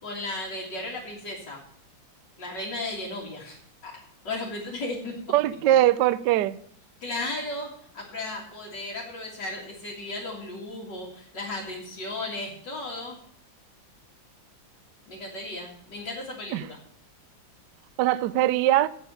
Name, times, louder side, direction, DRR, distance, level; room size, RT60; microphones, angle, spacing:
voice 1, 0.0-1.6 2.4-3.6 3.8-3.9 4.2-5.1 5.7-5.8 7.0-13.2 15.1-16.8, left 2 dB, 60° left, 2.7 m, -35 dB
voice 2, 5.3-6.6 16.5-16.6 18.0-18.9, right 13 dB, 75° right, 1.1 m, -21 dB
8.2 x 7.8 x 6.9 m
omnidirectional pair, 2.1 m